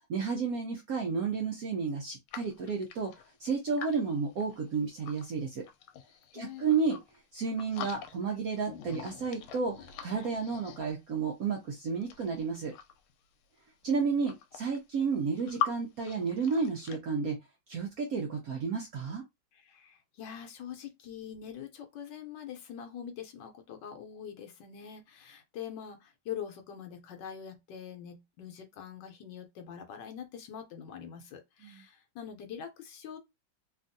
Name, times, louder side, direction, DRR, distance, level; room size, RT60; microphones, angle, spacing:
voice 1, 0.1-3.1 3.4-5.6 6.3-7.0 7.3-12.7 13.8-17.4 17.7-19.2 31.7-31.8, right 5 dB, 70° right, 0.9 m, -32 dB
sound 1, 2.3-5.3 5.6-7.2 7.5-8.4 8.6-11.2 11.9-13.1 13.8-13.9 14.1-15.7 16.0-17.0, left 9 dB, 90° left, 1.4 m, -42 dB
voice 2, 6.3-6.7 19.5-33.2, left 8 dB, 70° left, 1.3 m, -44 dB
3.4 x 2.4 x 2.6 m
omnidirectional pair, 2.2 m